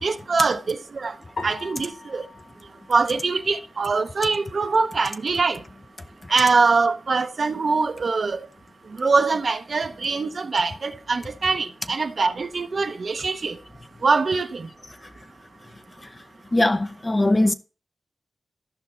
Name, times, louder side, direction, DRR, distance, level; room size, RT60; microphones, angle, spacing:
voice 1, 0.0-1.1 1.4-2.2 2.9-5.6 6.3-8.4 9.0-13.5 14.0-14.7, right 4 dB, 55° right, 0.8 m, -23 dB
sound 1, 1.4-3.8, left 3 dB, 75° left, 3.5 m, -40 dB
voice 2, 16.5-17.5, left 1 dB, 20° left, 0.6 m, -20 dB
14.0 x 5.7 x 3.2 m
wide cardioid pair, 100°, 0 cm